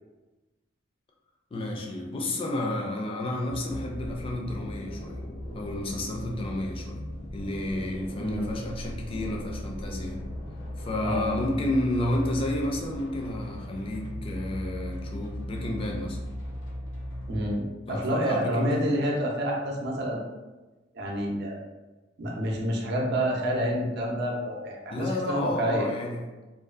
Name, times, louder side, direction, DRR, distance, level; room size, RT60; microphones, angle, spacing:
voice 1, 1.5-5.2 5.5-7.0 7.3-10.2 10.8-16.2 17.9-18.9 24.9-26.2, left 1 dB, 30° left, 0 dB, 0.4 m, -31 dB
sound 1, 3.5-17.5, equal, 80° left, 0.5 m, -37 dB
voice 2, 17.3-20.3 20.9-21.6 22.2-25.9, equal, 60° right, -1 dB, 0.5 m, -28 dB
2.5 x 2.2 x 2.4 m, 1.1 s
head